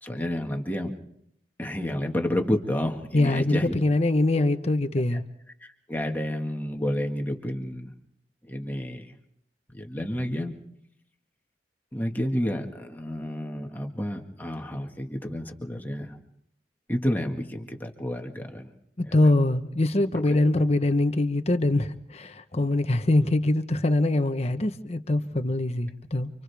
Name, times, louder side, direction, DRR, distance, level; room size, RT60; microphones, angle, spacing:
voice 1, 0.0-0.9 1.6-3.7 5.1-5.2 5.6-7.9 8.5-9.1 9.7-10.5 11.9-16.1 16.9-18.7 19.1-19.3 20.3-20.4 22.5-22.7, left 1 dB, 10° left, 1.8 m, -30 dB
voice 2, 3.1-5.2 19.0-26.3, left 2 dB, 35° left, 1.1 m, -23 dB
29.5 x 26.0 x 3.5 m
head